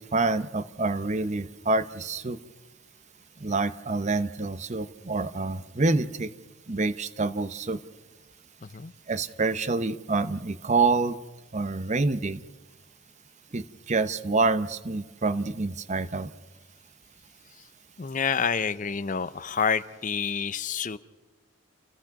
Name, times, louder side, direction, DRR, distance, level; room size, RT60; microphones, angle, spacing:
voice 1, 0.0-2.4 3.4-6.3 6.7-7.8 9.1-11.2 11.5-12.4 13.5-16.3, right 3 dB, 35° right, 0.7 m, -27 dB
voice 2, 18.0-21.0, left 6 dB, 40° left, 0.6 m, -28 dB
28.5 x 16.5 x 6.0 m
head